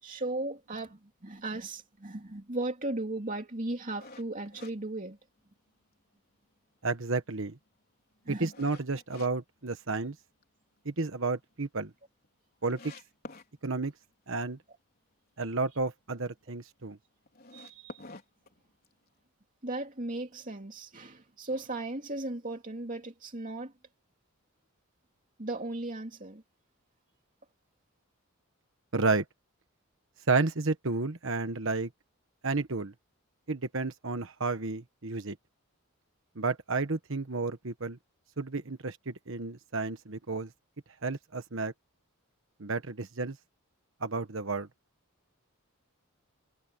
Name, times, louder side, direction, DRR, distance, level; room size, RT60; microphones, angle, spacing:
voice 1, 0.0-5.2 8.2-8.5 17.5-18.0 19.6-23.7 25.4-26.4, right 2 dB, 35° right, 2.7 m, -36 dB
sound 1, 4.0-5.7 6.1-6.2 6.8-9.3 9.7-10.4 10.8-10.9 11.2-11.3 11.5-11.6 12.2-12.3 12.7-13.5 17.2-19.1, left 2 dB, 40° left, 4.2 m, -49 dB
voice 2, 6.8-7.6 8.3-10.1 10.8-11.9 12.6-12.8 13.6-13.9 14.3-14.6 15.4-17.0 28.9-29.2 30.3-31.9 32.4-32.9 33.5-35.4 36.3-38.0 38.4-40.5 41.0-41.7 42.6-43.4 44.0-44.7, right 3 dB, 60° right, 1.3 m, -31 dB
head